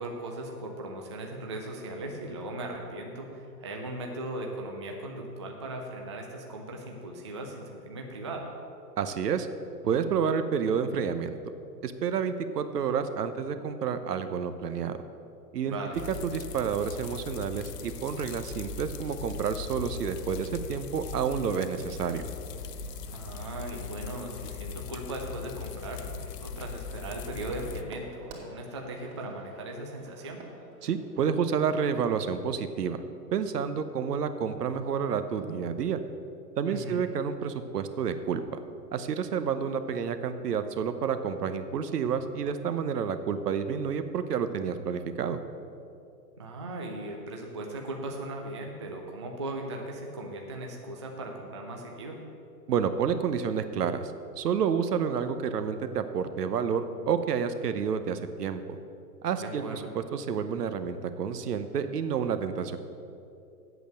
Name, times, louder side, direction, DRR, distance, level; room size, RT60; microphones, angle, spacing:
voice 1, 0.0-8.5 15.6-16.0 23.1-30.5 36.7-37.0 46.4-52.2 59.3-59.9, right 1 dB, 20° right, 1 dB, 0.3 m, -38 dB
voice 2, 9.0-9.5 9.8-11.4 11.8-15.0 15.5-15.8 16.2-22.3 30.8-33.0 33.3-36.0 36.6-38.4 38.9-45.4 52.7-58.6 59.2-59.8 60.1-62.8, right 7 dB, 70° right, 10 dB, 0.9 m, -29 dB
sound 1, 15.9-27.8, left 5 dB, 75° left, 0.8 m, -39 dB
sound 2, 27.1-32.2, right 2 dB, 50° right, 2.3 m, -51 dB
8.2 x 7.0 x 7.7 m, 2.6 s
hypercardioid pair, 130°, 49 cm